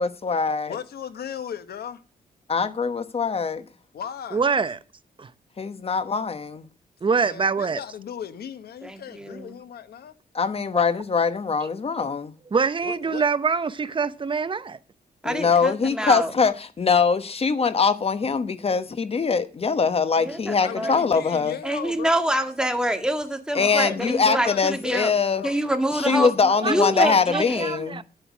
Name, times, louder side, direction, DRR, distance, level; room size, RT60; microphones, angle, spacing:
voice 1, 0.0-0.8 2.5-3.6 5.6-6.6 10.3-12.3 15.2-21.5 23.5-25.4 25.9-28.0, left 5 dB, 40° left, 1.0 m, -22 dB
voice 2, 0.7-2.0 3.9-4.4 7.2-10.1 12.8-13.3 20.6-22.3 23.5-24.6 25.1-25.6 25.9-27.3, left 8 dB, 80° left, 1.2 m, -37 dB
voice 3, 4.3-4.8 5.2-5.3 7.0-7.8 11.6-11.7 12.5-14.8 26.6-28.0, right 5 dB, 30° right, 0.8 m, -25 dB
voice 4, 8.8-9.5 15.2-16.3 20.2-21.0 21.6-25.1 25.4-26.3 26.6-27.8, right 1 dB, 5° right, 1.9 m, -26 dB
10.0 x 8.1 x 6.1 m
cardioid pair, 105°, 16 cm